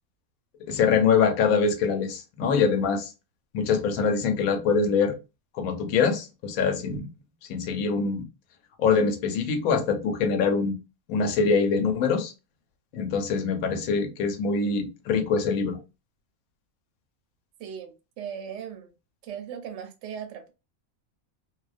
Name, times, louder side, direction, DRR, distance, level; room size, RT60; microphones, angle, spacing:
voice 1, 0.6-3.1 3.5-5.2 5.5-7.1 7.5-8.3 8.8-10.8 11.1-12.3 12.9-15.8, left 5 dB, 90° left, 1.0 m, -24 dB
voice 2, 17.6-18.9 19.2-20.5, right 8 dB, 70° right, 0.8 m, -38 dB
2.4 x 2.1 x 2.4 m
omnidirectional pair, 1.4 m